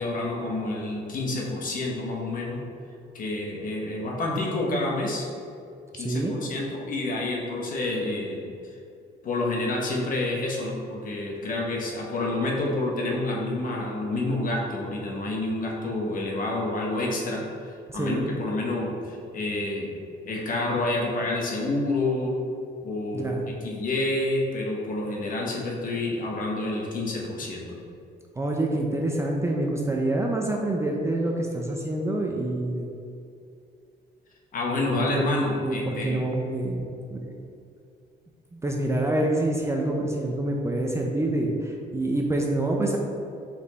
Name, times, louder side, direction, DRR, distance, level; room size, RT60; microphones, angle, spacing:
voice 1, 0.0-2.6 3.1-5.3 6.0-8.5 9.2-17.4 17.9-19.9 20.2-22.4 22.8-27.8 34.5-36.2, left 2 dB, 50° left, -2 dB, 1.2 m, -28 dB
voice 2, 6.0-6.3 17.9-18.3 23.1-23.5 28.4-32.9 34.9-35.2 35.6-37.3 38.5-43.0, right 1 dB, 15° right, 0 dB, 0.6 m, -27 dB
5.2 x 4.4 x 4.1 m, 2.5 s
cardioid pair, 125°, 18 cm